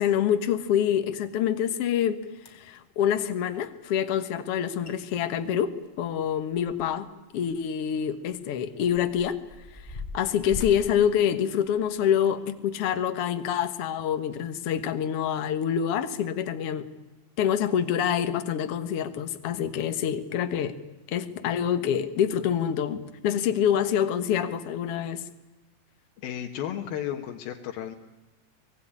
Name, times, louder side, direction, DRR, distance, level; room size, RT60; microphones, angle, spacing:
voice 1, 0.0-2.2 2.5-5.7 6.0-7.1 7.3-9.4 9.7-16.9 17.4-20.7 21.1-25.2, left 9 dB, 55° left, 10 dB, 1.8 m, -26 dB
sound 1, 2.4-2.8 4.5-4.6 4.8-5.0 5.3-7.1 7.4-7.6 8.3-12.0 12.6-12.8 13.5-13.6, left 3 dB, 10° left, 3.3 m, -42 dB
voice 2, 26.2-28.0, left 10 dB, 80° left, 2 dB, 3.1 m, -33 dB
24.5 x 19.5 x 9.9 m, 1.1 s
omnidirectional pair, 4.2 m